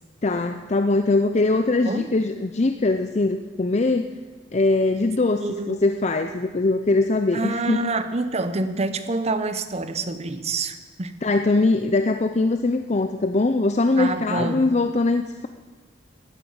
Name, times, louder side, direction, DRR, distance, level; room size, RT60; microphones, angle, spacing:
voice 1, 0.2-4.1 4.5-7.9 11.2-15.5, left 2 dB, 40° left, 8 dB, 0.6 m, -22 dB
voice 2, 5.4-5.8 7.3-11.1 13.9-14.7, right 3 dB, 35° right, 11 dB, 0.8 m, -27 dB
13.0 x 9.9 x 8.7 m, 1.3 s
head